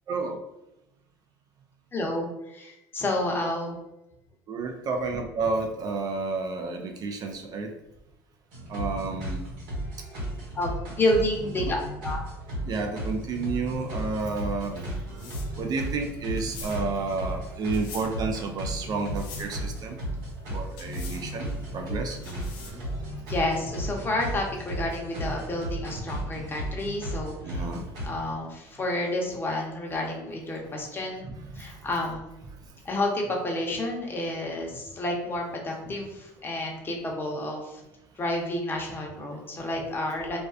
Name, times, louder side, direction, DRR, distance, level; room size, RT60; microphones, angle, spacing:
voice 1, 1.9-3.8 10.5-12.2 15.1-15.2 23.3-27.7 28.0-31.3 31.5-32.2 32.8-37.8 38.1-40.4, left 1 dB, 25° left, -1 dB, 0.7 m, -30 dB
voice 2, 4.5-7.7 8.7-9.4 11.6-11.8 12.6-14.8 15.6-20.0 20.5-22.2 27.4-27.8 31.5-31.7, right 4 dB, 50° right, 4 dB, 0.4 m, -31 dB
sound 1, 8.5-28.1, right 1 dB, 75° right, 1.2 m, -35 dB
sound 2, 14.5-23.0, left 3 dB, 70° left, 0.7 m, -45 dB
2.3 x 2.2 x 2.4 m, 0.91 s
supercardioid pair, 80°, 9 cm